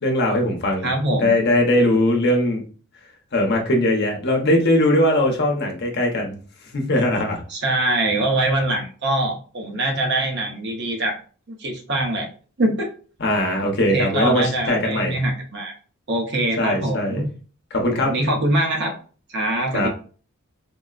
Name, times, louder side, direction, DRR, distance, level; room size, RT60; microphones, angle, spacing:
voice 1, 0.0-0.9 1.2-2.6 3.3-6.4 6.7-7.4 13.2-15.2 16.6-17.2 17.7-18.1 19.7-19.9, left 1 dB, 50° left, 1 dB, 0.7 m, -20 dB
voice 2, 0.8-1.3 7.5-11.2 11.5-12.3 12.6-12.9 13.9-15.7 16.1-17.3 18.0-19.0 19.3-19.9, right 1 dB, 55° right, 2 dB, 0.7 m, -23 dB
3.7 x 2.0 x 2.4 m, 0.39 s
head